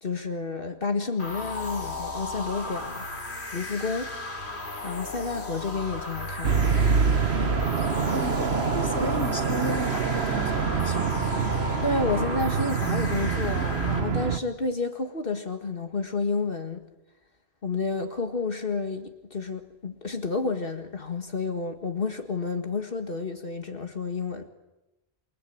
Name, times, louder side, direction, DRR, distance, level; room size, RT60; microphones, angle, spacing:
voice 1, 0.0-3.0 3.5-4.1 4.8-6.7 9.0-9.1 11.8-16.8 17.6-24.5, left 4 dB, 60° left, 6 dB, 2.0 m, -30 dB
sound 1, 1.2-14.0, left 2 dB, 80° left, 3.1 m, -35 dB
sound 2, 6.4-14.4, right 6 dB, 70° right, 1.4 m, -25 dB
voice 2, 8.1-11.6, left 2 dB, 15° left, 5 dB, 2.3 m, -35 dB
28.5 x 23.0 x 8.6 m, 0.99 s
omnidirectional pair, 1.1 m